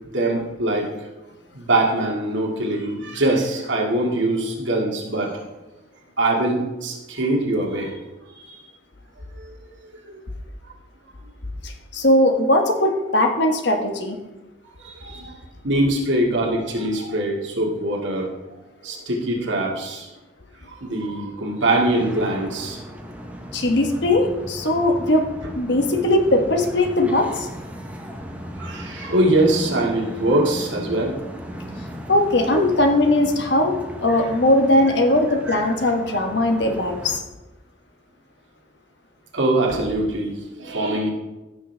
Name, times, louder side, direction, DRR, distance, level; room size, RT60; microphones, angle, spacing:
voice 1, 0.1-0.9 1.5-5.5 6.2-7.9 8.4-8.5 9.4-9.5 10.1-10.2 14.8-15.3 15.6-18.3 18.8-20.1 20.7-22.8 28.6-31.2 32.5-32.6 35.5-35.6 39.3-41.1, right 1 dB, 75° right, -1 dB, 2.0 m, -23 dB
voice 2, 11.6-14.2 23.5-25.3 25.5-27.5 32.1-37.2, left 1 dB, 65° left, 5 dB, 1.2 m, -19 dB
sound 1, 21.6-37.2, equal, 10° right, 0.9 m, -36 dB
15.0 x 6.4 x 3.4 m, 1.1 s
head